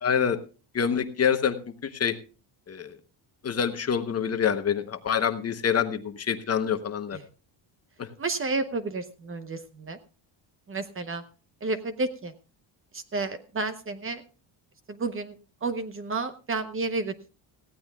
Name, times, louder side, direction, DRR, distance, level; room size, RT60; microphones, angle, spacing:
voice 1, 0.0-0.4 0.7-1.6 1.8-2.1 2.7-2.9 3.4-7.2 8.0-8.1, left 7 dB, 30° left, 8 dB, 1.0 m, -26 dB
voice 2, 8.2-10.0 10.7-11.2 11.6-12.3 12.9-14.2 14.9-15.3 15.6-17.3, right 3 dB, 25° right, 11 dB, 0.9 m, -31 dB
19.0 x 15.5 x 2.3 m, 0.35 s
cardioid pair, 165°, 47 cm